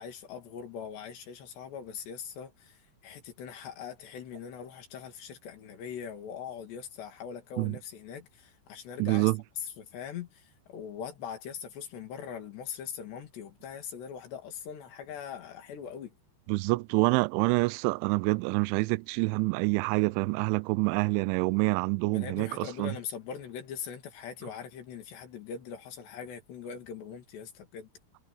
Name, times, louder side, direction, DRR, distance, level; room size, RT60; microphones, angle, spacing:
voice 1, 0.0-9.3 9.6-16.1 22.1-27.9, left 7 dB, 65° left, 4.7 m, -41 dB
voice 2, 9.0-9.4 16.5-22.9, right 25 dB, 85° right, 3.0 m, -27 dB
omnidirectional pair, 5.4 m